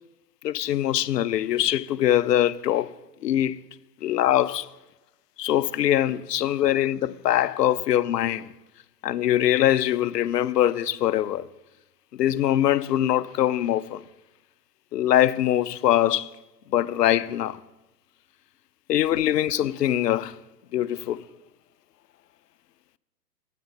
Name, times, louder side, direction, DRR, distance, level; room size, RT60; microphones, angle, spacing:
voice 1, 0.4-2.9 3.2-3.6 4.0-4.7 5.4-8.5 9.0-11.5 12.1-14.0 14.9-16.3 16.7-17.6 18.9-20.4 20.7-21.2, left 12 dB, 75° left, 0.5 m, -23 dB
9.4 x 7.7 x 5.5 m
hypercardioid pair, 135°, 49 cm